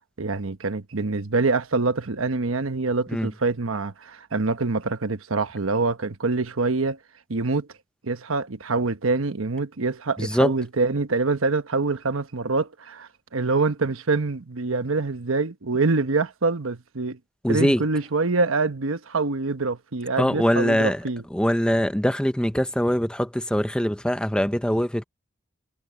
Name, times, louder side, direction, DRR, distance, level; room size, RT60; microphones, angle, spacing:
voice 1, 0.2-7.0 7.3-7.7 8.0-17.2 17.5-21.2, right 3 dB, 90° right, 1.1 m, -25 dB
voice 2, 10.2-10.5 17.4-17.8 20.2-21.0 21.3-25.0, equal, 5° left, 0.7 m, -22 dB
head